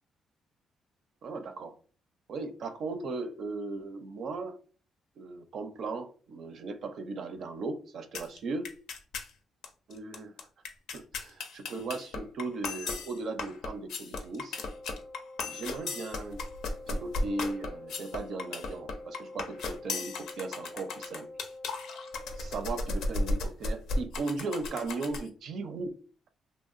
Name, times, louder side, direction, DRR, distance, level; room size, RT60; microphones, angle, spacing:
voice 1, 1.2-1.8 2.3-4.6 5.2-8.8 9.9-10.3 10.9-14.6 15.4-16.4 16.9-21.3 22.3-26.0, right 3 dB, 65° right, 0.5 m, -37 dB
sound 1, 8.1-8.4 8.6-9.3 9.6-9.7 9.9-25.3, left 2 dB, 85° left, 0.5 m, -35 dB
Wind instrument woodwind instrument, 14.5-22.7, left 2 dB, 15° left, 0.4 m, -47 dB
2.8 x 2.1 x 2.5 m
cardioid pair, 90°, 0 cm